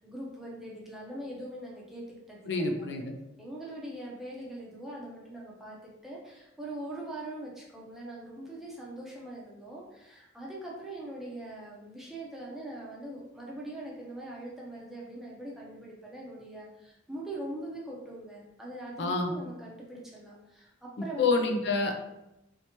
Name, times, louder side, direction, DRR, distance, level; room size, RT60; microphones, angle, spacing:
voice 1, 0.0-2.9 3.4-21.5, right 1 dB, ahead, -5 dB, 0.6 m, -42 dB
voice 2, 2.5-3.1 19.0-19.3 21.2-22.0, left 3 dB, 65° left, 4 dB, 0.4 m, -27 dB
3.3 x 2.8 x 2.9 m, 0.91 s
head